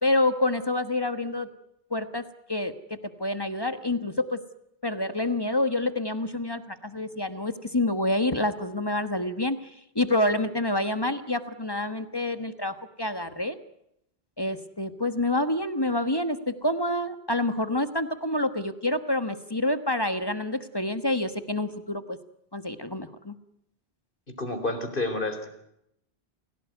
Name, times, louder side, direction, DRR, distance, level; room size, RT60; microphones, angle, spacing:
voice 1, 0.0-1.5 1.9-2.2 2.5-2.7 3.2-4.4 4.8-9.6 9.9-13.6 14.4-22.2 22.5-23.3, left 1 dB, 25° left, 10 dB, 1.4 m, -27 dB
voice 2, 24.4-25.5, left 2 dB, 55° left, 7 dB, 4.3 m, -29 dB
28.5 x 17.5 x 9.3 m, 0.80 s
omnidirectional pair, 1.1 m